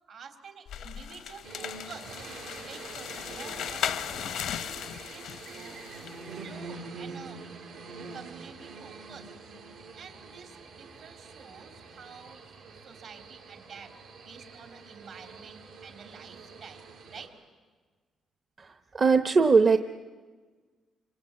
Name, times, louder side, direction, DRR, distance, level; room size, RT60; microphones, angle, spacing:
voice 1, 0.1-2.1 2.6-5.9 6.3-7.5 8.1-9.3 9.9-14.0 14.2-16.8 17.1-17.4, right 6 dB, 65° right, 5 dB, 3.7 m, -49 dB
sound 1, 0.7-6.2, left 9 dB, 80° left, 0.8 m, -37 dB
sound 2, 1.4-17.3, right 4 dB, 90° right, 6.5 m, -45 dB
voice 2, 18.6-19.8, right 4 dB, 40° right, 8 dB, 0.9 m, -21 dB
26.5 x 25.5 x 8.7 m, 1.5 s
cardioid pair, 90°, 0 cm